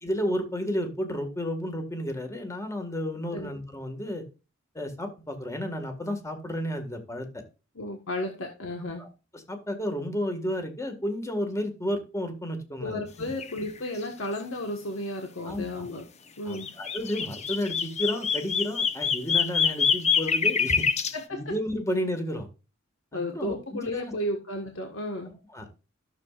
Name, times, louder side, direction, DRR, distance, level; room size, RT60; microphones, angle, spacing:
voice 1, 0.0-4.2 4.7-7.4 9.0-9.1 9.3-13.3 15.4-15.8 16.5-20.9 21.3-22.5 23.1-24.1 25.5-25.7, equal, 15° left, 6 dB, 1.8 m, -32 dB
voice 2, 7.7-9.1 12.8-16.1 16.4-16.7 21.3-21.4 23.1-25.4, left 1 dB, 70° left, 3 dB, 1.5 m, -33 dB
sound 1, 13.4-13.6 13.9-14.0 16.6-21.1, left 6 dB, 35° left, 0.8 m, -25 dB
13.5 x 7.0 x 2.5 m, 0.31 s
head